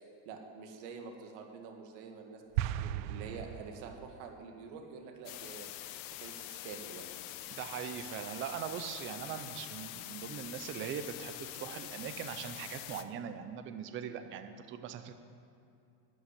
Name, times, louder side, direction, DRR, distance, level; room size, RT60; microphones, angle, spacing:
voice 1, 0.3-2.4 2.8-5.7 6.2-7.1, right 5 dB, 60° right, 3 dB, 2.1 m, -47 dB
sound 1, 2.6-4.2, right 13 dB, 85° right, 0.7 m, -36 dB
sound 2, 5.2-13.0, left 14 dB, 80° left, 0.9 m, -45 dB
voice 2, 7.5-15.1, right 8 dB, 25° right, 9 dB, 0.5 m, -41 dB
12.0 x 7.8 x 9.9 m, 2.7 s
cardioid pair, 170°, 50 cm